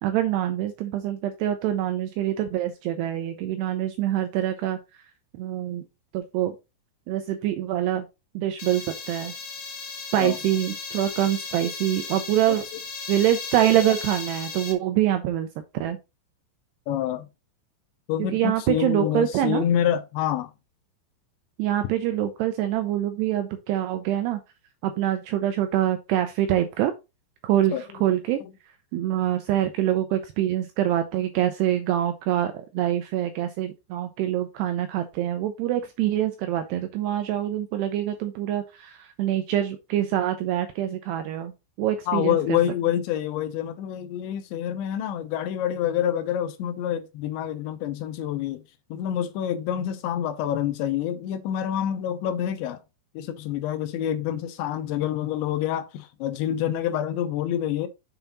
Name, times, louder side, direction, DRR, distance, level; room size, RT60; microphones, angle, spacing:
voice 1, 0.0-4.8 5.3-5.8 6.1-6.5 7.1-8.1 8.3-9.3 10.1-12.6 13.1-15.5 15.8-16.0 18.3-19.6 21.6-24.4 24.8-26.9 27.4-28.4 28.9-41.5 41.8-42.6, right 12 dB, 80° right, 2.4 m, -25 dB
sound 1, 8.6-14.7, left 4 dB, 55° left, 2.0 m, -36 dB
voice 2, 16.9-17.3 18.1-20.5 27.7-27.8 42.1-48.6 48.9-52.8 53.2-57.9, left 10 dB, 80° left, 2.9 m, -27 dB
7.1 x 5.4 x 4.1 m
omnidirectional pair, 5.5 m